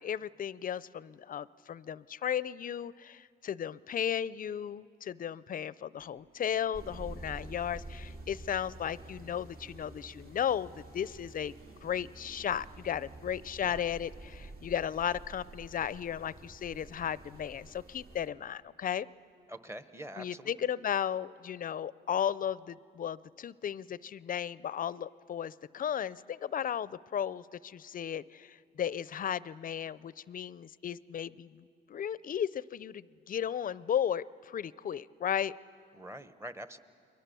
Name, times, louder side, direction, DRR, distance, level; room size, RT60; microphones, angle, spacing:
voice 1, 0.0-11.5 11.8-19.1 20.2-35.5, left 9 dB, 45° left, 19 dB, 0.5 m, -35 dB
sound 1, 6.0-18.2, right 3 dB, 65° right, 2.4 m, -64 dB
sound 2, 6.7-18.3, right 2 dB, 45° right, 2.5 m, -49 dB
voice 2, 19.5-20.7 35.9-36.8, right 1 dB, 15° right, 12 dB, 1.1 m, -45 dB
30.0 x 22.0 x 6.9 m, 2.3 s
cardioid pair, 90°, 20 cm